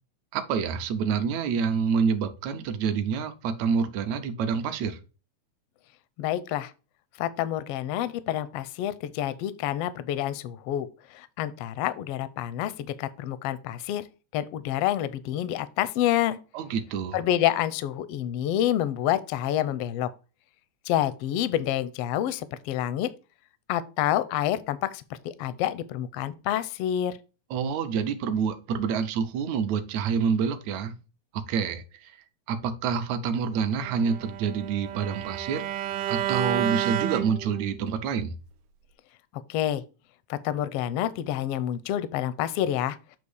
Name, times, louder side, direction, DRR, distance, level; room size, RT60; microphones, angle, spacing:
voice 1, 0.3-5.0 16.5-17.2 27.5-30.9 31.3-32.1 32.5-35.6 36.1-38.3, right 6 dB, 75° right, 2.0 m, -27 dB
voice 2, 6.2-6.7 7.2-10.9 11.1-14.0 14.3-16.4 17.1-20.1 20.8-23.1 23.7-27.2 39.5-39.8 40.3-43.0, left 12 dB, 80° left, 1.3 m, -28 dB
Bowed string instrument, 33.8-37.9, right 11 dB, 90° right, 2.1 m, -30 dB
8.2 x 3.0 x 6.3 m
omnidirectional pair, 3.4 m